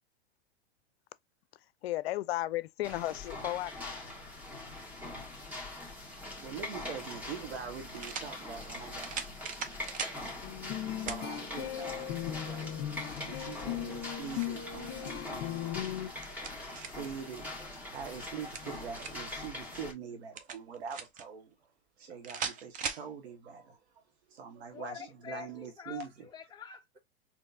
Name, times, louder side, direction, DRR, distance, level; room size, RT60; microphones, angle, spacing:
voice 1, 1.8-4.1, left 16 dB, 70° left, 0.5 m, -34 dB
sound 1, 2.8-19.9, left 2 dB, 5° right, 1.5 m, -43 dB
voice 2, 6.4-9.4 9.7-10.3 10.7-12.7 13.2-15.7 16.3-21.5 22.0-23.8 24.3-26.1, right 6 dB, 80° right, 1.2 m, -44 dB
sound 2, 8.0-8.3 9.0-10.2 11.1-11.2 11.8-11.9 13.8-14.6 15.9-17.1 18.3-19.3 20.4-21.2 22.2-23.1, right 6 dB, 25° right, 0.6 m, -39 dB
sound 3, 10.4-16.1, left 12 dB, 45° left, 1.3 m, -38 dB
voice 3, 24.7-27.0, left 7 dB, 15° left, 0.6 m, -46 dB
4.3 x 3.0 x 2.5 m
hypercardioid pair, 120°, 32 cm